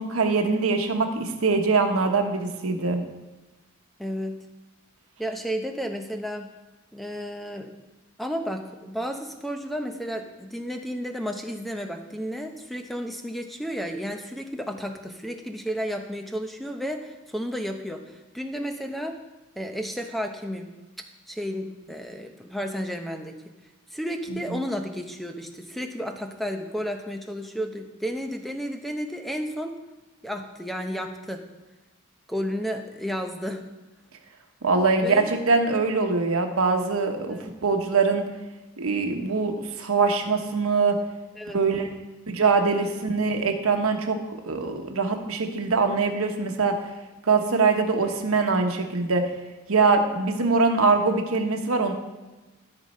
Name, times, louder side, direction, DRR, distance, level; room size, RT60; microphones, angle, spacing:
voice 1, 0.0-3.0 34.6-38.3 38.8-41.0 41.5-41.9 42.3-44.2 44.4-46.8 47.3-49.2 49.7-51.9, right 4 dB, 85° right, 4 dB, 1.1 m, -23 dB
voice 2, 4.0-4.4 5.2-6.5 6.9-7.8 8.2-19.2 19.6-20.7 21.3-23.4 23.9-29.7 30.2-31.4 32.3-33.6 35.0-35.3 37.3-37.6 41.3-42.0, equal, ahead, 5 dB, 0.7 m, -32 dB
14.0 x 5.3 x 4.3 m, 1.2 s
head